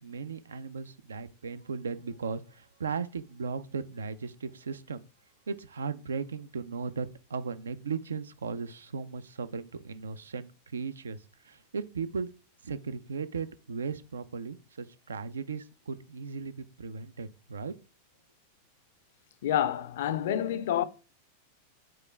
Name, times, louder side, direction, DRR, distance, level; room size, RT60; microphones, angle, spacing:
voice 1, 0.0-5.0 5.5-12.3 12.6-17.7, right 5 dB, 70° right, 0.4 m, -37 dB
voice 2, 19.4-20.9, left 10 dB, 55° left, 0.4 m, -28 dB
4.8 x 2.4 x 4.2 m
figure-of-eight pair, 90°, 0 cm